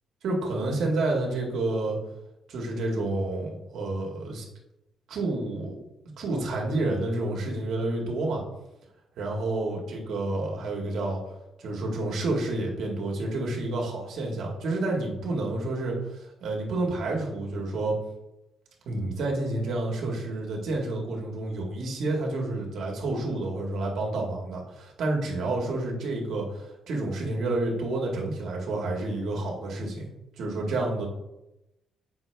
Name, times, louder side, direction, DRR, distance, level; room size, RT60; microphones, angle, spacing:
voice 1, 0.2-2.0 2.5-4.5 5.1-5.8 6.2-8.4 9.2-11.2 11.6-18.0 18.9-30.0 30.4-31.1, right 2 dB, 70° right, -1 dB, 1.9 m, -29 dB
7.3 x 5.9 x 3.4 m, 0.94 s
cardioid pair, 90°, 0 cm